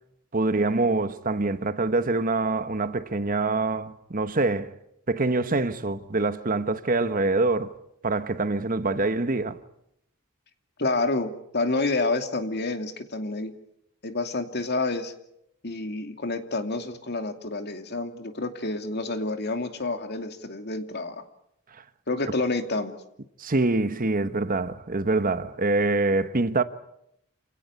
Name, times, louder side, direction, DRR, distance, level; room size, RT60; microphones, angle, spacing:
voice 1, 0.3-4.7 5.1-7.7 8.0-9.6 23.4-26.6, right 3 dB, 40° right, 1.1 m, -25 dB
voice 2, 10.8-13.5 14.0-15.1 15.6-21.2 22.1-23.0, left 2 dB, 50° left, 2.6 m, -28 dB
28.5 x 17.5 x 9.6 m
head